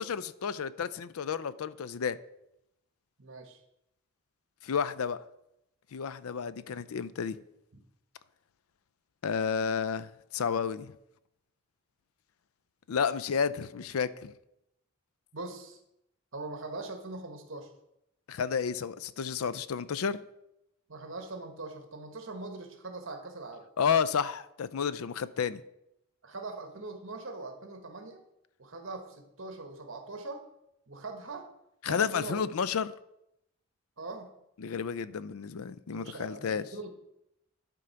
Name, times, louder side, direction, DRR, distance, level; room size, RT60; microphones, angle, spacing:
voice 1, 0.0-2.2 4.6-5.2 5.9-7.4 9.2-10.9 12.9-14.3 18.3-20.2 23.8-25.6 31.8-32.9 34.6-36.6, left 6 dB, 80° left, 0.4 m, -31 dB
voice 2, 3.2-3.6 15.3-15.8 16.3-17.7 20.9-23.7 26.2-28.2 28.6-30.5 30.9-31.5 31.9-32.4 34.0-34.4 35.9-36.9, right 3 dB, 60° right, 1.2 m, -41 dB
11.0 x 3.8 x 5.7 m
head